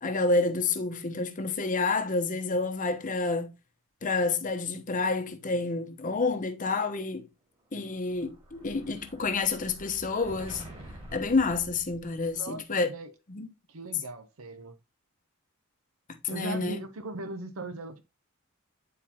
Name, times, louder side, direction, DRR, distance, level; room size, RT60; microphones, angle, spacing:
voice 1, 0.0-3.5 4.0-7.3 7.7-10.6 11.1-12.9 13.3-13.5 16.2-16.8, left 3 dB, 40° left, 0.9 m, -29 dB
Explosion, 7.8-12.5, right 1 dB, 30° right, 2.0 m, -47 dB
voice 2, 12.3-13.1 13.7-14.8 16.3-18.0, right 2 dB, 80° right, 0.8 m, -39 dB
9.6 x 4.2 x 2.8 m
head